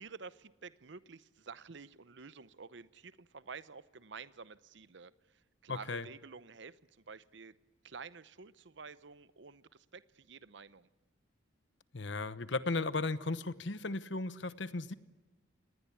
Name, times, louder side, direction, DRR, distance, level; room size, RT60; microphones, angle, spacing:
voice 1, 0.0-7.6 7.8-10.9, right 5 dB, 65° right, 16 dB, 0.8 m, -50 dB
voice 2, 5.7-6.1 11.9-14.9, left 3 dB, 65° left, 15 dB, 1.0 m, -36 dB
27.5 x 19.5 x 8.6 m, 1.2 s
head